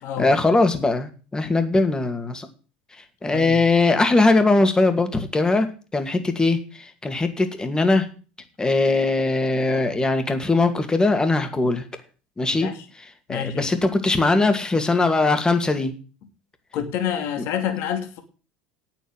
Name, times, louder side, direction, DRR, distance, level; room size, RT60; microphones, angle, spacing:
voice 1, 0.2-2.5 3.2-5.7 5.9-8.1 8.6-11.8 12.4-12.7 13.3-15.9, left 3 dB, 15° left, 2.2 m, -20 dB
voice 2, 13.3-13.7 16.7-18.2, left 9 dB, 60° left, 2.8 m, -28 dB
8.9 x 7.6 x 8.9 m
hypercardioid pair, 90°, 5 cm